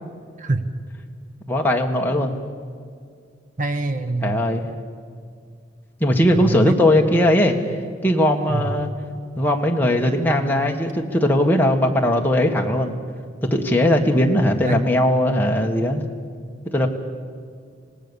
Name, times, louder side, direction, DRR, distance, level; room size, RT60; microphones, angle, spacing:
voice 1, 1.5-2.3 4.2-4.7 6.0-7.6 8.0-8.9 9.4-12.9 13.4-16.0 16.7-16.9, left 1 dB, 10° left, 1 dB, 1.6 m, -19 dB
voice 2, 3.6-4.4 6.3-6.7 8.5-8.7 14.7-14.8, right 2 dB, 45° right, 9 dB, 1.3 m, -24 dB
26.0 x 18.0 x 7.1 m, 2.1 s
head